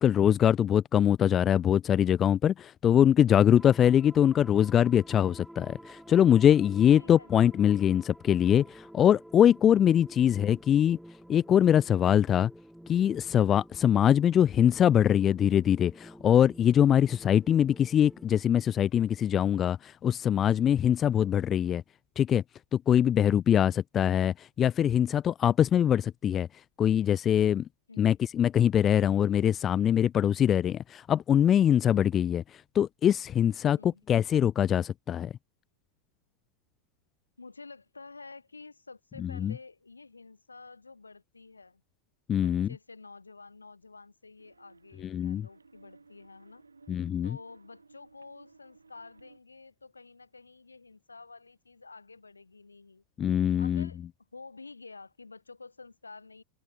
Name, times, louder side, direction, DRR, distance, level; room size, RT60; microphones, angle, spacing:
voice 1, 0.0-11.0 11.3-12.5 12.9-21.8 22.2-22.4 22.7-26.5 26.8-27.6 28.0-32.4 32.7-35.3 39.2-39.5 42.3-42.7 45.1-45.5 46.9-47.3 53.2-53.9, left 9 dB, 25° left, 0.6 m, -23 dB
sound 1, 3.6-18.3, right 1 dB, ahead, 3.6 m, -50 dB
voice 2, 6.8-7.6 10.1-10.4 27.9-28.1 33.8-34.0 37.4-41.8 42.3-46.6 47.2-53.0 53.6-56.4, left 3 dB, 80° left, 5.0 m, -50 dB
sound 2, 44.4-49.4, right 4 dB, 80° right, 5.3 m, -58 dB
figure-of-eight pair, 90°, 0 cm